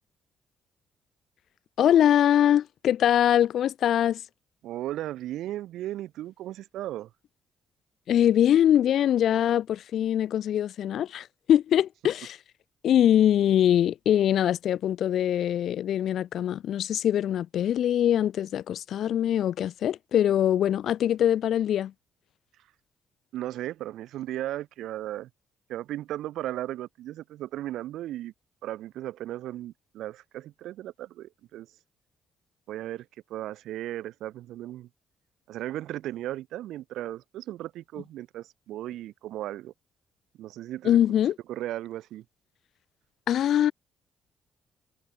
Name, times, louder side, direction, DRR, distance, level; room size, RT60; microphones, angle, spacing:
voice 1, 1.8-4.2 8.1-12.4 12.8-21.9 40.8-41.3 43.3-43.7, left 10 dB, 70° left, 1.6 m, -23 dB
voice 2, 4.6-7.1 23.3-25.3 25.7-28.3 28.6-31.7 32.7-33.0 33.3-34.9 35.5-39.7 40.4-41.0 41.5-42.2, right 14 dB, 85° right, 4.7 m, -36 dB
cardioid pair, 90°, 0 cm